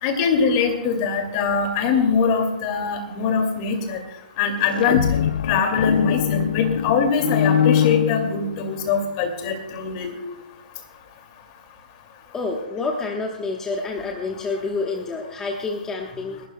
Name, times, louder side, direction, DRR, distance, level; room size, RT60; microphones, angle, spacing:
voice 1, 0.0-4.0 4.4-10.2, left 5 dB, 35° left, 5 dB, 2.3 m, -22 dB
sound 1, 4.6-8.8, left 9 dB, 65° left, 0.4 m, -22 dB
voice 2, 12.3-16.4, left 3 dB, 10° left, 0 dB, 1.1 m, -28 dB
29.0 x 12.5 x 2.2 m, 0.94 s
hypercardioid pair, 155°, 5 cm